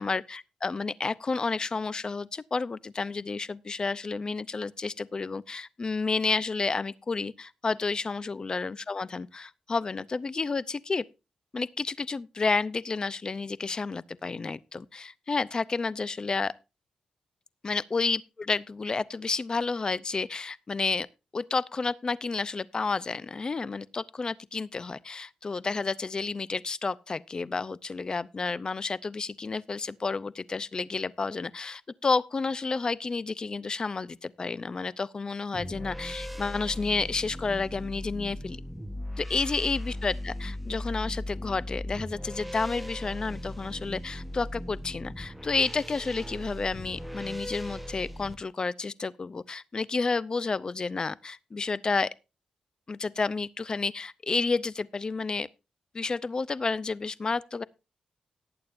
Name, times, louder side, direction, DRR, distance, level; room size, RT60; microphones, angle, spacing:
voice 1, 0.0-11.0 11.5-16.5 17.6-21.1 21.3-38.6 39.2-52.1 52.9-55.5 55.9-57.6, left 4 dB, 35° left, 0.5 m, -31 dB
sound 1, 35.5-48.4, left 1 dB, ahead, 1.1 m, -38 dB
18.5 x 8.5 x 2.6 m
cardioid pair, 90°, 2 cm